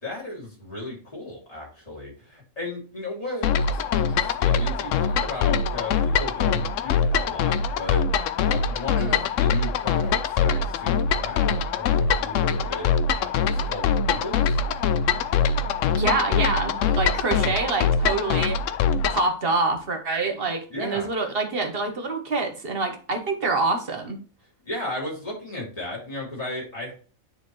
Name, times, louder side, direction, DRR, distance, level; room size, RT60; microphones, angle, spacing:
voice 1, 0.0-8.0 8.4-14.6 20.7-21.1 24.6-26.9, left 2 dB, 25° left, -4 dB, 3.0 m, -35 dB
sound 1, 3.4-19.3, left 6 dB, 70° left, 0.9 m, -23 dB
voice 2, 15.9-18.6 19.1-24.2, right 3 dB, 45° right, 5 dB, 1.2 m, -26 dB
9.8 x 3.7 x 3.1 m, 0.39 s
omnidirectional pair, 1.4 m